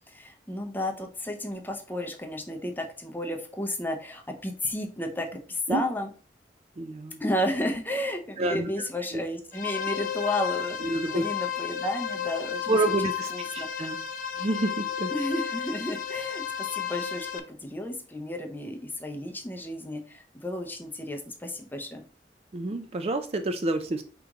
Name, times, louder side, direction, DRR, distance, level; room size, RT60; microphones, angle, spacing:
voice 1, 0.1-6.1 7.2-12.8 13.3-13.7 15.1-22.0, left 1 dB, 10° left, 3 dB, 0.6 m, -32 dB
voice 2, 6.8-7.2 8.4-8.7 9.1-9.2 10.8-11.2 12.7-14.0 14.4-15.1 22.5-24.0, right 2 dB, 35° right, 8 dB, 0.4 m, -28 dB
sound 1, 9.5-17.4, left 9 dB, 50° left, 0.5 m, -32 dB
4.9 x 3.0 x 3.6 m, 0.39 s
head